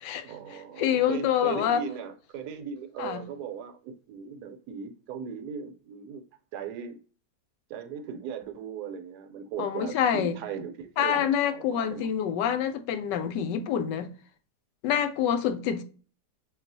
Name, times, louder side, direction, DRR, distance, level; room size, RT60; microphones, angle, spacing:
voice 1, 0.2-6.2 6.5-7.0 7.7-12.1, right 7 dB, 75° right, 1.1 m, -38 dB
voice 2, 0.8-1.8 3.0-3.3 9.6-10.4 11.0-14.1 14.8-15.8, left 9 dB, 90° left, 1.2 m, -26 dB
5.9 x 2.4 x 2.6 m
omnidirectional pair, 1.8 m